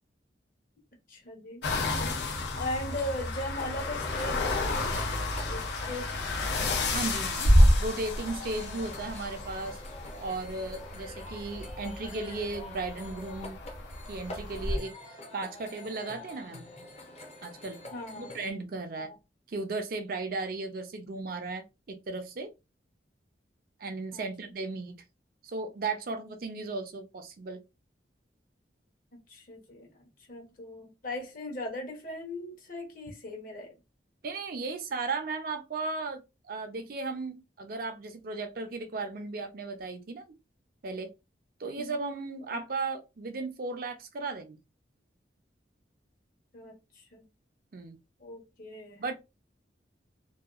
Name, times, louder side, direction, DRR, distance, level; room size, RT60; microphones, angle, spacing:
voice 1, 1.1-5.1 5.4-6.2 17.9-18.3 19.0-19.2 24.1-24.3 29.3-29.9 30.3-33.7 41.8-42.0 46.5-46.7 47.1-47.2 48.2-49.1, left 1 dB, 50° left, 1.0 m, -39 dB
sound 1, 1.6-14.8, left 1 dB, 75° left, 0.6 m, -29 dB
sound 2, 3.6-18.5, left 2 dB, 35° left, 0.7 m, -46 dB
voice 2, 6.9-7.5 7.8-9.8 10.2-13.6 14.1-14.9 15.3-16.6 17.4-17.8 18.2-19.1 19.5-22.5 23.8-25.0 25.4-27.6 34.2-40.2 40.8-41.1 41.6-44.6 47.7-48.0 49.0-49.1, right 3 dB, 55° right, 0.5 m, -35 dB
2.7 x 2.3 x 2.4 m
head